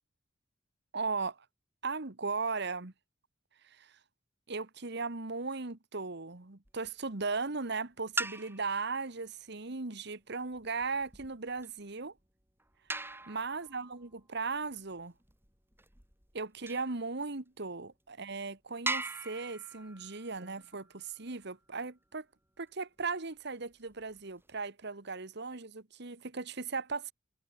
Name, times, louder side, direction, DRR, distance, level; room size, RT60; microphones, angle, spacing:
voice 1, 0.9-1.4 1.8-2.9 3.6-4.0 4.5-12.1 13.1-15.1 16.3-22.2 22.6-27.1, right 4 dB, 60° right, 1.7 m, -37 dB
sound 1, 6.6-7.1 8.0-8.9 10.5-17.0 17.6-17.7 18.2-18.3 18.9-21.5 23.6-24.6, right 2 dB, 10° right, 5.8 m, -42 dB
head